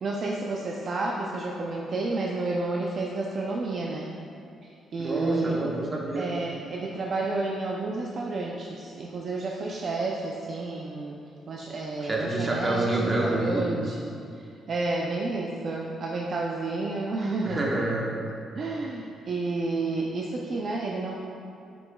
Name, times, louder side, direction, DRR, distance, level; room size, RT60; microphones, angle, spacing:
voice 1, 0.0-4.1 4.9-5.6 6.2-11.2 11.5-14.0 14.7-17.6 18.6-21.1, right 3 dB, 50° right, -2 dB, 0.4 m, -30 dB
voice 2, 5.0-6.3 12.0-13.8 17.4-18.0, right 2 dB, 25° right, -3 dB, 1.1 m, -27 dB
6.8 x 6.2 x 2.3 m, 2.5 s
cardioid pair, 90°, 0 cm